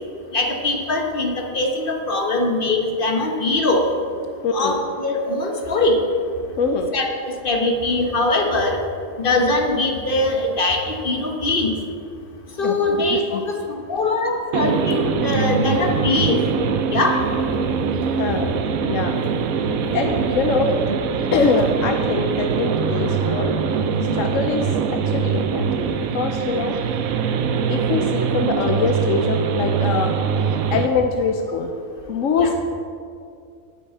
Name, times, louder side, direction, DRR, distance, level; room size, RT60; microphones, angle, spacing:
voice 1, 0.3-3.9 4.5-6.0 6.9-8.8 9.2-11.7 12.6-16.4 16.9-17.2 32.4-32.5, left 2 dB, 40° left, 2 dB, 1.3 m, -22 dB
voice 2, 4.4-4.8 6.6-6.9 12.6-13.4 18.2-18.5 18.9-19.2 19.9-20.8 21.3-23.6 24.1-27.0 27.5-30.1 30.7-31.7 32.1-32.6, left 4 dB, 70° left, 5 dB, 1.0 m, -23 dB
sound 1, 14.5-30.9, right 6 dB, 80° right, 1.1 m, -23 dB
8.7 x 6.4 x 8.2 m, 2.4 s
omnidirectional pair, 1.5 m